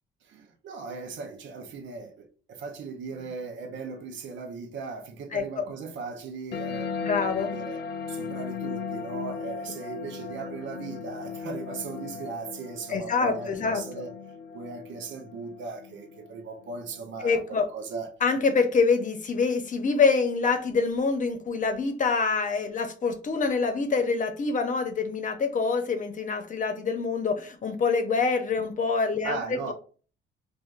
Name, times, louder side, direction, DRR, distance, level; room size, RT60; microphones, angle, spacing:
voice 1, 0.2-7.0 7.3-7.8 8.1-14.1 14.5-18.1 29.2-29.7, right 4 dB, 70° right, 0.7 m, -38 dB
voice 2, 5.3-5.6 7.0-7.5 12.9-13.8 17.2-17.7 18.2-29.7, left 4 dB, 40° left, 0.8 m, -26 dB
sound 1, 6.5-17.5, left 5 dB, 55° left, 0.5 m, -37 dB
4.4 x 2.5 x 2.5 m
cardioid pair, 90°, 20 cm